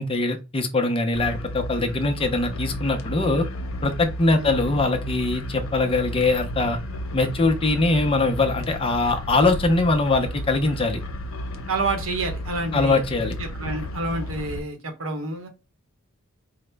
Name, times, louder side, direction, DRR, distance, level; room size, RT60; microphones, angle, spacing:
voice 1, 0.0-3.5 3.8-6.8 7.1-11.0 12.7-13.4, left 2 dB, 25° left, 0.5 m, -22 dB
sound 1, 1.1-14.6, left 1 dB, 90° left, 0.7 m, -33 dB
voice 2, 11.7-15.5, right 2 dB, 90° right, 0.9 m, -29 dB
4.7 x 2.1 x 3.3 m
head